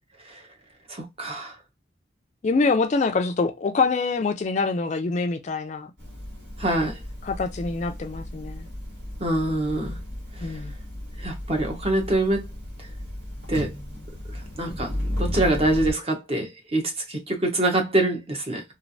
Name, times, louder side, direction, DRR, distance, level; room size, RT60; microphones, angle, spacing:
voice 1, 0.9-1.5 6.6-7.0 9.2-10.0 11.2-12.4 13.5-13.7 14.6-18.6, right 1 dB, 30° right, 0.8 m, -25 dB
voice 2, 2.4-5.9 7.2-8.7 10.4-10.7, left 4 dB, 35° left, 0.3 m, -25 dB
sound 1, 6.0-15.9, left 1 dB, 80° right, 1.6 m, -34 dB
3.1 x 2.5 x 2.5 m
head